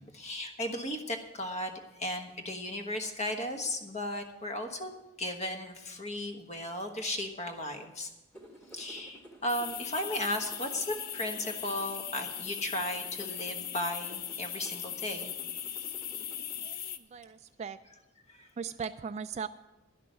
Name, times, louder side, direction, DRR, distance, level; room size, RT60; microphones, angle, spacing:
voice 1, 0.1-4.9 5.2-8.1 8.7-15.3 18.3-18.5, left 1 dB, 35° left, 5 dB, 1.3 m, -35 dB
sound 1, 8.3-16.6, right 1 dB, 5° left, 1.6 m, -53 dB
sound 2, 9.5-17.0, left 10 dB, 50° left, 0.6 m, -39 dB
voice 2, 16.6-17.8 18.6-19.5, right 6 dB, 35° right, 12 dB, 0.3 m, -39 dB
11.5 x 6.2 x 9.2 m, 0.99 s
head